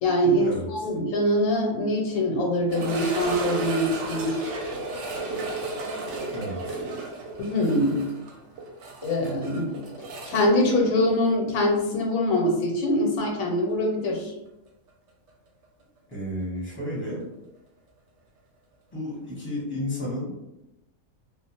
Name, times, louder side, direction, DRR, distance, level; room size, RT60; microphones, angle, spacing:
voice 1, 0.0-4.5 7.4-8.0 9.0-9.7 10.3-14.3, left 1 dB, 90° left, 1 dB, 1.1 m, -23 dB
sound 1, 2.7-11.6 11.9-12.0 12.6-12.7 15.3-15.4, right 2 dB, 65° right, 0.8 m, -34 dB
voice 2, 6.3-6.8 16.1-17.2 18.9-20.3, left 1 dB, 10° left, -6 dB, 0.7 m, -32 dB
2.3 x 2.0 x 2.8 m, 0.90 s
omnidirectional pair, 1.4 m